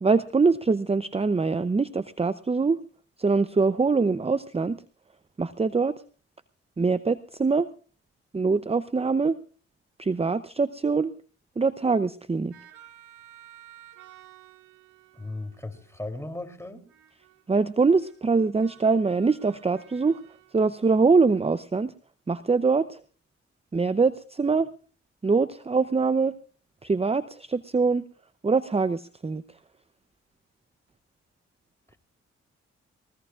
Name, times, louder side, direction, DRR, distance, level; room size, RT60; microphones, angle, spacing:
voice 1, 0.0-2.8 3.2-4.8 5.4-5.9 6.8-7.7 8.3-9.4 10.0-11.1 11.6-12.5 17.5-20.2 20.5-21.9 22.3-23.0 23.7-24.7 25.2-26.3 26.8-28.0 28.4-29.4, right 4 dB, 20° right, 14 dB, 0.7 m, -23 dB
sound 1, 12.5-16.0 16.9-17.4 17.8-20.6, right 13 dB, 90° right, 2.0 m, -53 dB
voice 2, 15.1-16.8 31.9-32.0, left 2 dB, 10° left, 6 dB, 3.3 m, -37 dB
22.0 x 19.0 x 2.5 m, 0.39 s
supercardioid pair, 50°, 30 cm